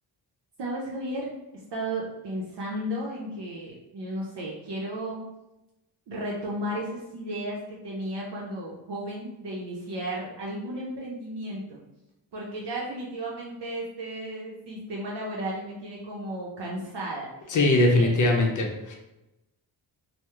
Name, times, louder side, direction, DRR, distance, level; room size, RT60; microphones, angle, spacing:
voice 1, 0.6-5.3 6.1-11.8 12.3-17.6 17.9-18.1, right 1 dB, 60° right, -4 dB, 0.6 m, -34 dB
voice 2, 17.5-18.9, left 2 dB, 40° left, 1 dB, 0.6 m, -21 dB
2.2 x 2.0 x 2.9 m, 0.95 s
cardioid pair, 60°, 47 cm